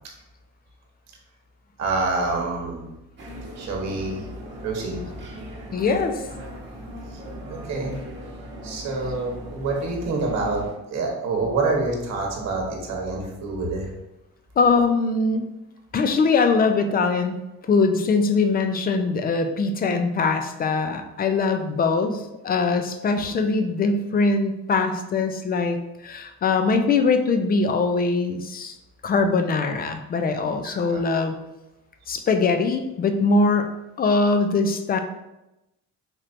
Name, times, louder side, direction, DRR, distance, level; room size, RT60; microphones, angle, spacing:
voice 1, 1.8-2.9 3.6-4.2 4.6-5.0 7.5-8.0 8.6-10.6 10.9-13.9 23.2-23.3 30.6-31.0, right 3 dB, 55° right, 0 dB, 1.1 m, -27 dB
sound 1, 3.2-10.7, equal, 35° right, 1.1 m, -38 dB
voice 2, 5.7-6.2 14.6-15.4 15.9-17.4 17.7-25.8 26.0-28.8 29.0-31.4 32.1-33.7 34.0-35.0, left 4 dB, 30° left, 7 dB, 0.4 m, -22 dB
4.4 x 3.2 x 2.5 m, 0.94 s
cardioid pair, 105°, 31 cm